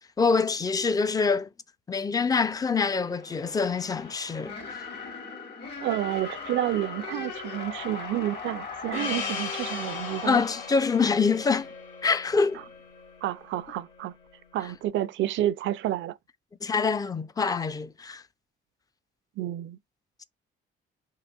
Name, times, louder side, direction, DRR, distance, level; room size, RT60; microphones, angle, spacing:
voice 1, 0.2-1.5 1.9-4.5 10.2-11.7 12.0-12.6 16.6-18.2, left 5 dB, 20° left, 0.4 m, -25 dB
sound 1, 2.9-11.7, left 5 dB, 55° left, 1.5 m, -39 dB
voice 2, 5.8-10.5 13.2-14.1 14.5-16.2 19.4-19.8, right 13 dB, 75° right, 0.4 m, -30 dB
Gong, 8.9-13.7, left 5 dB, 80° left, 1.7 m, -38 dB
3.9 x 2.6 x 2.3 m
cardioid pair, 90°, 20 cm